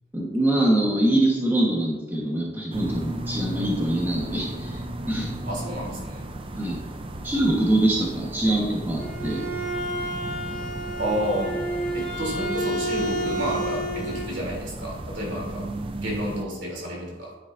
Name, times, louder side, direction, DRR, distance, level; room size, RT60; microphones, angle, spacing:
voice 1, 0.1-4.8 5.1-5.4 6.6-6.8 7.2-9.5, right 1 dB, 10° right, -3 dB, 1.2 m, -24 dB
sound 1, 2.7-16.4, right 1 dB, 30° right, 0.5 m, -35 dB
voice 2, 5.5-6.3 11.0-11.5 11.9-15.6 16.0-17.3, equal, 75° right, -3 dB, 3.2 m, -30 dB
Bowed string instrument, 8.8-14.3, right 1 dB, 5° left, 2.0 m, -30 dB
10.5 x 9.1 x 2.6 m, 1.2 s
head